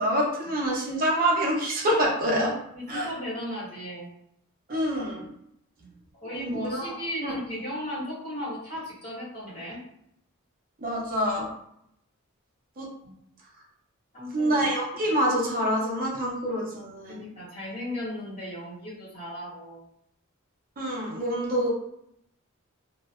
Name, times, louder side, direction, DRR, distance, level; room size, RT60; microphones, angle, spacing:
voice 1, 0.0-2.5 2.9-3.1 4.7-5.3 6.3-6.9 7.2-7.4 10.8-11.5 12.8-12.9 14.3-17.2 20.8-21.7, equal, 40° right, -3 dB, 0.7 m, -26 dB
voice 2, 2.7-4.1 5.8-5.9 6.2-9.8 13.0-13.2 14.1-14.6 17.1-19.8, equal, 35° left, -9 dB, 1.1 m, -36 dB
2.5 x 2.1 x 2.3 m, 0.75 s
head